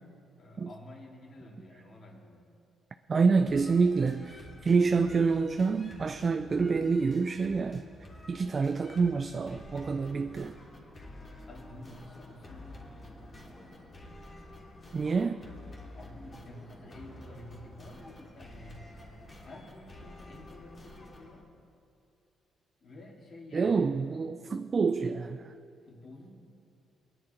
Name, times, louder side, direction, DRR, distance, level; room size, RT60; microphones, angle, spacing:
voice 1, 0.4-2.5 11.5-14.1 15.9-19.0 19.4-21.5 22.8-23.9 25.8-26.3, left 1 dB, 55° left, 3.0 m, -50 dB
voice 2, 3.1-7.9 8.3-10.5 14.9-15.4 23.5-25.5, right 4 dB, 40° right, 0.4 m, -27 dB
sound 1, 3.5-21.4, left 1 dB, 35° left, 2.9 m, -49 dB
21.5 x 10.0 x 4.5 m
cardioid pair, 90°, 0 cm